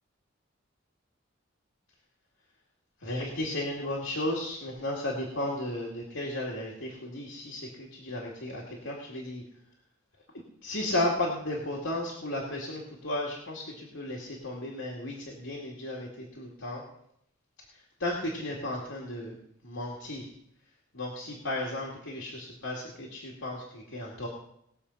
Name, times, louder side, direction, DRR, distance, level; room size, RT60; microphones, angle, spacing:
voice 1, 3.0-9.4 10.3-16.8 18.0-19.4 19.6-20.3 20.9-24.3, left 1 dB, 80° left, -3 dB, 2.5 m, -34 dB
20.0 x 7.3 x 5.6 m, 0.75 s
head